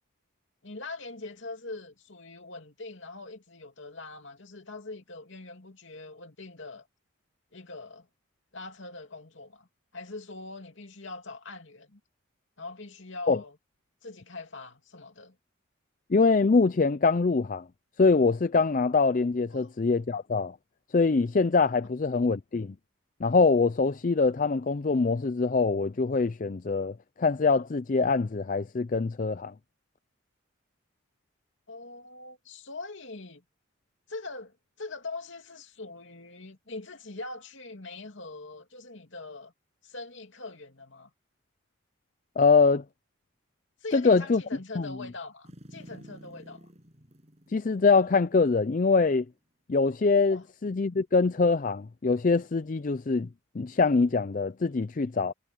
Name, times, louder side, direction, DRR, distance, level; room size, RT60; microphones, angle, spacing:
voice 1, 0.6-6.9 7.5-8.1 8.5-9.7 9.9-12.0 12.6-13.6 14.0-15.4 19.5-19.8 31.7-33.4 34.1-39.5 39.8-41.1 43.8-46.7 50.3-50.4, left 3 dB, 65° left, 2.7 m, -42 dB
voice 2, 16.1-17.7 18.0-20.6 20.9-22.8 23.2-29.5 42.4-42.8 43.9-44.4 44.8-44.9 47.5-49.3 49.7-53.3 53.5-55.3, left 4 dB, 40° left, 0.4 m, -24 dB
sound 1, 45.4-48.8 49.2-49.3, equal, 30° right, 7.1 m, -51 dB
head